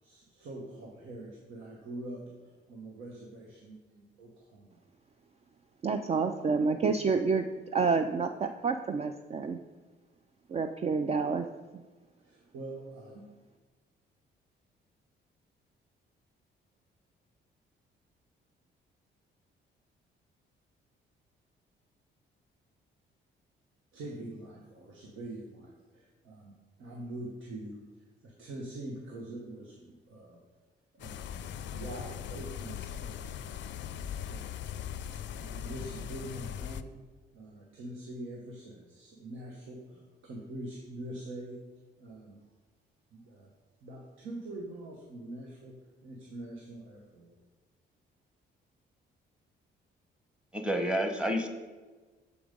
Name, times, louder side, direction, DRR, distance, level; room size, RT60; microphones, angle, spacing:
voice 1, 0.0-4.8 12.2-13.2 23.9-26.5 26.8-27.8 28.2-30.4 30.9-31.4 31.7-33.7 34.2-34.6 35.1-37.0 37.3-41.6 42.0-42.4 43.1-43.5 43.8-45.7 46.0-47.4, right 1 dB, 80° right, -1 dB, 1.2 m, -44 dB
voice 2, 5.8-7.5 7.7-9.6 10.5-11.5, right 5 dB, 30° right, 7 dB, 0.4 m, -28 dB
sound 1, 31.0-36.8, left 9 dB, 65° left, 0.4 m, -40 dB
voice 3, 50.5-51.5, equal, 5° right, 4 dB, 1.0 m, -29 dB
6.9 x 4.9 x 5.2 m, 1.3 s
cardioid pair, 90°, 20 cm